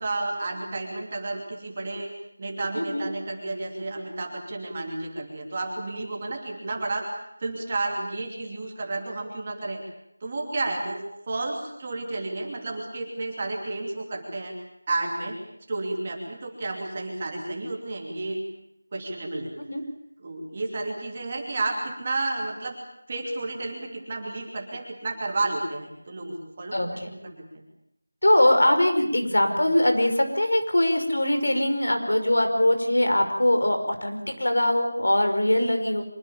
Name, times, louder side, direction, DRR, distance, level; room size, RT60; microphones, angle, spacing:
voice 1, 0.0-2.1 2.4-7.1 7.4-9.8 10.2-14.6 14.9-15.4 15.7-18.4 18.9-19.5 20.2-22.7 23.1-27.6, right 2 dB, 15° right, 0 dB, 2.8 m, -31 dB
voice 2, 2.8-3.1 19.7-19.8 26.7-27.1 28.2-36.0, left 1 dB, 85° left, 6 dB, 5.7 m, -22 dB
24.5 x 22.5 x 7.2 m, 0.75 s
figure-of-eight pair, 180°, 0 cm